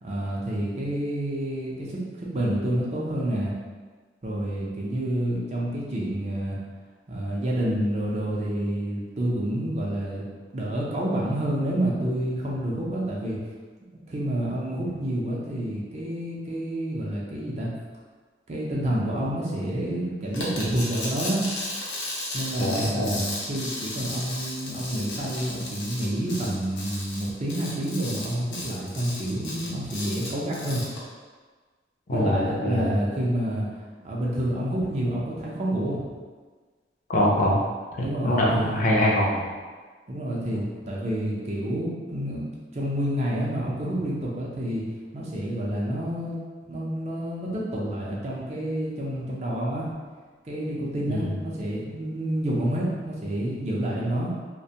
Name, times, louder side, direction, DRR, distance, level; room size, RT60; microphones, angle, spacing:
voice 1, 0.0-3.5 4.2-6.6 7.1-10.2 10.5-13.4 14.1-17.7 18.5-21.4 22.3-30.8 32.1-33.7 34.0-36.0 38.0-38.8 40.1-42.4 42.7-44.8 45.1-46.4 46.7-49.9 50.4-54.3, right 1 dB, 40° right, -5 dB, 0.5 m, -28 dB
sound 1, 20.3-31.0, left 1 dB, 90° left, 0.7 m, -35 dB
voice 2, 22.6-23.2 32.1-32.9 37.1-37.6 38.0-39.4 51.1-51.3, left 1 dB, 50° left, -3 dB, 0.5 m, -23 dB
2.5 x 2.2 x 2.8 m, 1.4 s
head